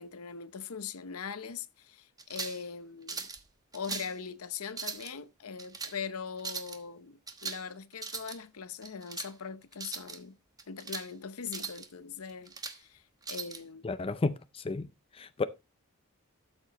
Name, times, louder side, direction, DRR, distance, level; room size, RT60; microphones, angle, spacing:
voice 1, 0.0-3.3 3.7-10.4 10.7-13.0 13.3-13.9, left 6 dB, 70° left, 0.8 m, -41 dB
sound 1, 2.2-2.6 3.1-3.4 3.7-4.1 4.7-5.1 5.6-5.9 6.4-6.8 7.3-7.7 7.9-8.4 8.8-9.3 9.7-10.2 10.6-11.1 11.5-11.9 12.3-12.8 13.2-13.6, right 5 dB, 15° right, 1.1 m, -39 dB
voice 2, 13.8-15.4, left 3 dB, 25° left, 0.4 m, -33 dB
12.5 x 7.1 x 2.9 m
head